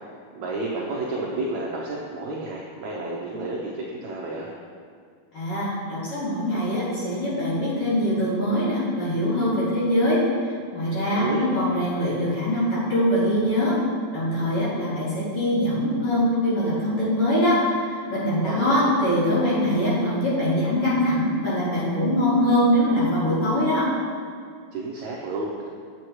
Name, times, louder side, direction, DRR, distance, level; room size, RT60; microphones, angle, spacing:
voice 1, 0.3-4.5 11.0-11.5 18.4-19.0 24.7-25.7, right 2 dB, 90° right, -3 dB, 1.6 m, -31 dB
voice 2, 5.3-10.2 10.7-13.8 14.1-23.9, equal, 45° left, -9 dB, 3.0 m, -23 dB
9.3 x 8.5 x 3.1 m, 2.1 s
omnidirectional pair, 4.3 m